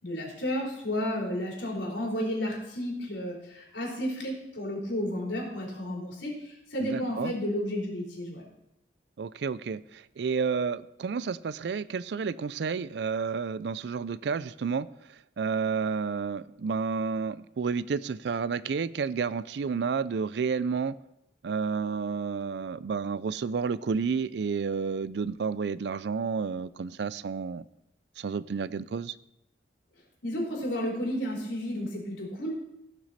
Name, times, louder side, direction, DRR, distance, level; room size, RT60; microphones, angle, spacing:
voice 1, 0.0-8.5 30.2-32.5, equal, 85° left, -2 dB, 3.9 m, -32 dB
voice 2, 6.8-7.3 9.2-14.9 15.4-20.9 21.4-27.7 28.2-29.1, right 5 dB, 65° right, 17 dB, 0.4 m, -30 dB
16.5 x 6.2 x 4.1 m, 0.83 s
head